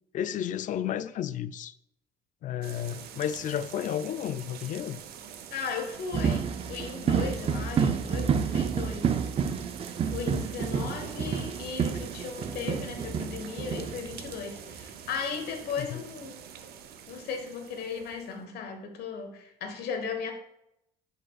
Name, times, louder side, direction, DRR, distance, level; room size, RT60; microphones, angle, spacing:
voice 1, 0.1-1.8 2.4-5.0 15.8-16.0, left 10 dB, 50° left, 0.4 m, -32 dB
sound 1, 2.6-18.4, right 8 dB, 70° right, 0.7 m, -45 dB
voice 2, 5.5-9.1 10.0-16.4 17.1-20.3, left 5 dB, 70° left, 1.3 m, -36 dB
sound 2, 6.1-14.0, right 6 dB, 35° right, 0.5 m, -29 dB
9.8 x 5.0 x 2.4 m
cardioid pair, 110°, 17 cm